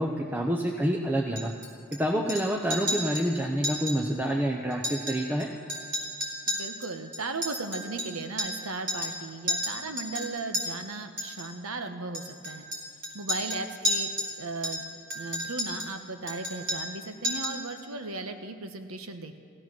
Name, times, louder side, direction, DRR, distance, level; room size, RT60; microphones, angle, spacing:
voice 1, 0.0-1.5 1.9-5.5, equal, 10° right, 0 dB, 0.7 m, -27 dB
Chink clink, 1.4-2.0 2.3-2.4 2.7-3.3 3.6-4.0 4.2-4.3 4.7-5.4 5.7-8.6 8.9-9.2 9.5-10.6 11.2-11.5 12.1-14.3 14.6-15.9 16.3-17.0 17.2-17.6, equal, 60° right, 3.4 m, -32 dB
voice 2, 6.5-12.7 13.1-14.1 14.4-14.8 15.1-19.4, right 3 dB, 80° right, 7 dB, 1.1 m, -36 dB
16.5 x 13.0 x 6.1 m, 2.4 s
head